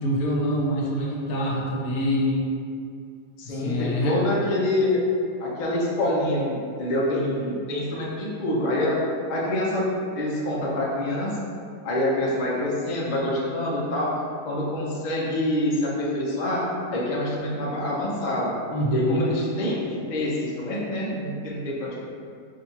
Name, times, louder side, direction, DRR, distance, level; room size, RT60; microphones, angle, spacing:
voice 1, 0.0-2.5 3.4-4.2 18.7-19.3, equal, 70° left, -2 dB, 1.1 m, -25 dB
voice 2, 3.4-5.0 5.4-9.0 9.3-9.9 10.1-11.4 11.8-14.1 14.4-18.5 18.9-22.0, left 1 dB, 50° left, -5 dB, 0.5 m, -26 dB
5.0 x 2.6 x 2.8 m, 2.4 s
omnidirectional pair, 1.7 m